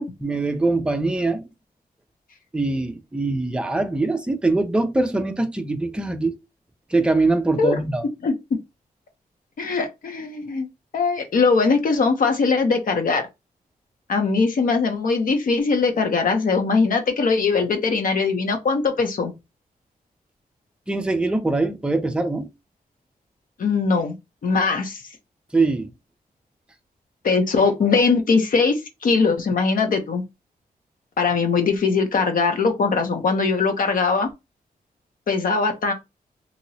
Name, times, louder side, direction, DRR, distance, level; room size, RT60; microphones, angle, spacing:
voice 1, 0.2-1.4 2.5-6.4 6.9-8.0 20.9-22.5 25.5-25.9, right 2 dB, 5° right, 0.5 m, -22 dB
voice 2, 8.2-8.6 9.6-10.7 10.9-13.2 14.1-19.3 23.6-24.2 24.4-25.0 27.2-30.2 31.2-34.3 35.3-35.9, left 4 dB, 60° left, 0.9 m, -21 dB
3.0 x 2.9 x 2.7 m
wide cardioid pair, 165°, 16 cm